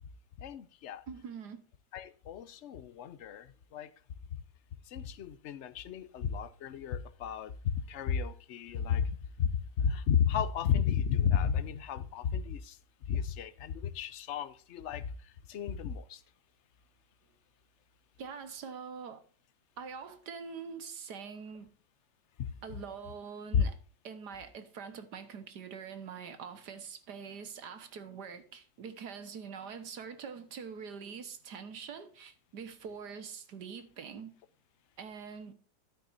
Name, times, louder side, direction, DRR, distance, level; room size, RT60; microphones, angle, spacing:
voice 1, 0.4-1.0 1.9-3.9 4.9-9.5 9.8-12.8 13.1-15.0 15.5-16.2 22.4-22.5 23.5-23.6, left 8 dB, 55° left, 0.9 m, -32 dB
voice 2, 1.1-1.6 18.2-19.2 19.8-21.7 22.6-23.8 24.0-34.3 35.0-35.5, right 6 dB, 90° right, 1.9 m, -44 dB
13.0 x 9.1 x 2.7 m
omnidirectional pair, 1.7 m